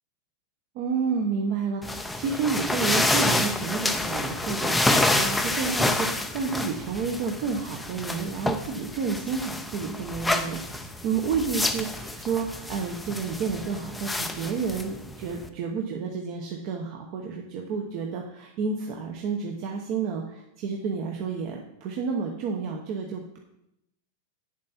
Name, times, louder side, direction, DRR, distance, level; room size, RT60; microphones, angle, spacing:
voice 1, 0.7-23.4, right 5 dB, 45° right, 1 dB, 1.0 m, -30 dB
sound 1, 1.8-15.5, left 2 dB, 5° left, 0.5 m, -28 dB
9.1 x 7.4 x 4.4 m, 0.82 s
supercardioid pair, 155°, 0 cm